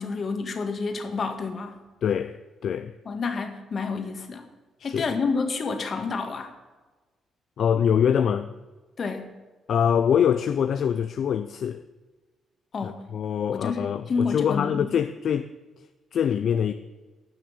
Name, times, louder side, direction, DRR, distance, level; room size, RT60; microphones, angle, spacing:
voice 1, 0.0-1.8 3.1-4.5 4.8-6.5 9.0-9.3 12.7-13.1 13.5-15.0, left 4 dB, 45° left, 1.9 m, -29 dB
voice 2, 2.0-2.9 4.8-5.0 7.6-8.5 9.7-11.8 12.8-15.5 16.1-16.7, left 8 dB, 65° left, 0.5 m, -24 dB
10.5 x 6.5 x 9.0 m
cardioid pair, 90°, 0 cm